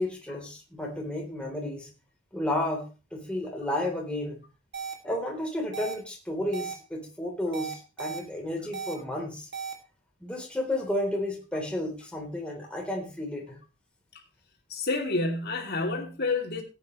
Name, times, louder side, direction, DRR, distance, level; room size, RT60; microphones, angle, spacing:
voice 1, 0.0-1.9 2.3-4.4 5.0-9.5 10.2-13.6, left 1 dB, 5° left, 3.5 m, -32 dB
sound 1, 4.7-4.9 5.7-5.9 6.5-6.7 7.5-8.2 8.7-8.9 9.5-9.7, right 6 dB, 60° right, 2.6 m, -35 dB
voice 2, 14.7-16.6, left 3 dB, 55° left, 2.8 m, -29 dB
17.5 x 9.0 x 3.2 m
head